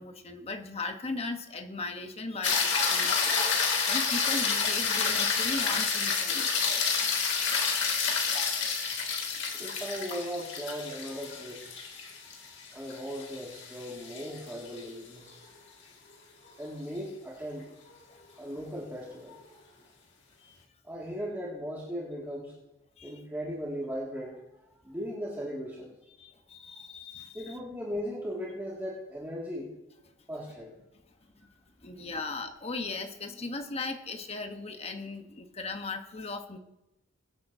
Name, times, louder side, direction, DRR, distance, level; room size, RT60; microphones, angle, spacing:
voice 1, 0.0-3.6 3.9-6.5 18.1-18.2 20.4-20.6 23.0-23.1 26.2-27.6 31.8-36.6, left 3 dB, 30° left, 6 dB, 1.0 m, -38 dB
sound 1, 2.4-14.8 19.3-19.4, left 5 dB, 60° left, 2.0 m, -29 dB
voice 2, 9.6-11.6 12.3-12.4 12.7-15.3 16.6-17.7 18.4-19.4 20.8-22.5 23.0-25.9 27.3-29.7 30.3-30.7 31.4-31.5, equal, 10° right, -6 dB, 2.1 m, -38 dB
22.5 x 10.0 x 2.7 m, 0.90 s
head